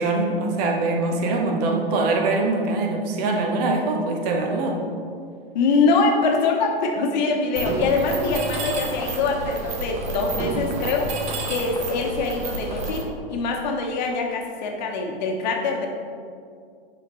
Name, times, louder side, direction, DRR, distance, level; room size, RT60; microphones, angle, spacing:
voice 1, 0.0-4.8 8.2-8.3, right 2 dB, 40° right, 1 dB, 1.1 m, -23 dB
voice 2, 5.5-11.1 11.5-15.9, left 4 dB, 45° left, 1 dB, 1.2 m, -23 dB
Mechanisms, 7.6-13.0, right 2 dB, 20° right, 0.7 m, -30 dB
9.0 x 5.0 x 3.1 m, 2.3 s
figure-of-eight pair, 110°, 31 cm